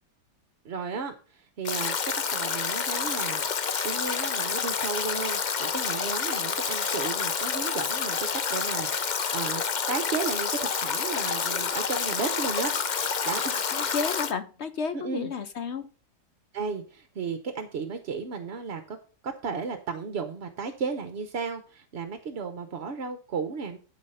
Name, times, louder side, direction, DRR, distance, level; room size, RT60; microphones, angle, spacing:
voice 1, 0.6-2.0 2.3-3.4 3.8-9.6 9.9-13.9 14.9-15.3 16.5-19.0 19.2-23.8, right 5 dB, 50° right, 8 dB, 0.9 m, -34 dB
Stream / Drip / Trickle dribble, 1.6-14.3, left 6 dB, 75° left, 0.4 m, -28 dB
voice 2, 13.7-15.9, left 5 dB, 60° left, 11 dB, 0.7 m, -32 dB
12.0 x 4.8 x 5.6 m, 0.37 s
omnidirectional pair, 1.8 m